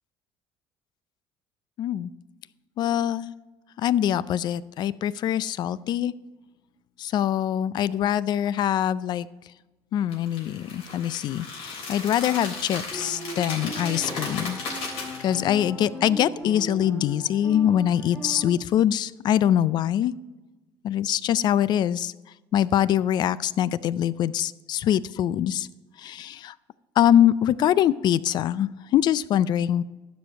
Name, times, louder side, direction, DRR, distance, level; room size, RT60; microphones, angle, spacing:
voice 1, 1.8-2.1 2.8-3.3 3.8-6.1 7.0-9.3 9.9-14.6 15.2-20.1 20.8-22.1 22.5-25.7 26.0-26.5 27.0-29.8, left 10 dB, 50° left, 19 dB, 0.4 m, -23 dB
sound 1, 10.1-15.6, left 3 dB, 75° left, 3.5 m, -35 dB
sound 2, 12.9-18.5, equal, 15° left, 2.2 m, -38 dB
12.0 x 5.2 x 5.4 m, 1.1 s
cardioid pair, 130°, 9 cm